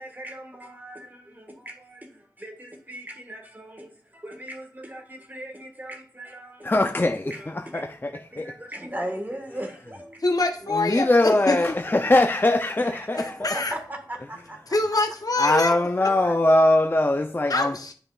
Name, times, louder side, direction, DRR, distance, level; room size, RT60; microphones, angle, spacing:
voice 1, 0.0-7.0 7.2-10.2 10.6-11.0 11.3-11.7 11.9-12.2 12.6-14.8 16.0-16.4, right 1 dB, 25° right, 1.6 m, -39 dB
voice 2, 6.6-8.5 10.7-13.6 15.4-17.8, left 1 dB, 30° left, 0.5 m, -22 dB
voice 3, 10.2-11.6 13.2-13.7 14.7-15.7 17.5-17.9, left 2 dB, 55° left, 0.8 m, -24 dB
9.8 x 5.0 x 2.4 m
wide cardioid pair, 50°, 7 cm